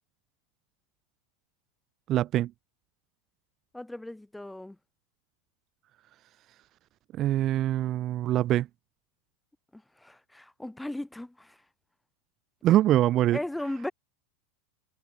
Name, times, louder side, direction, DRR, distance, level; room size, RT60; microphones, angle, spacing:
voice 1, 2.1-2.5 7.1-8.7 12.6-13.4, right 13 dB, 40° right, 0.9 m, -24 dB
voice 2, 3.7-4.8 9.7-11.6 13.3-13.9, left 1 dB, 5° left, 2.3 m, -37 dB
supercardioid pair, 120°, 0 cm